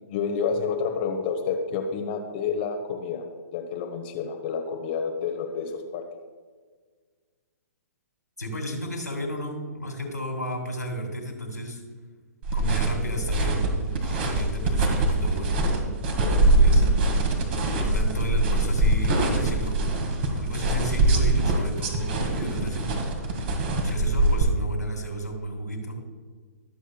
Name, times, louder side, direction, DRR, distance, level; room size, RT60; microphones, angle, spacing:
voice 1, 0.1-3.2 3.5-6.0, left 6 dB, 35° left, 3 dB, 1.2 m, -29 dB
voice 2, 8.4-11.8 12.5-15.6 16.2-17.0 17.7-20.0 20.3-22.9 23.8-25.9, right 1 dB, 85° left, 1 dB, 3.2 m, -33 dB
sound 1, 12.4-24.4, right 2 dB, 40° right, 2.0 m, -23 dB
24.0 x 8.1 x 2.4 m, 1.5 s
figure-of-eight pair, 120°, 9 cm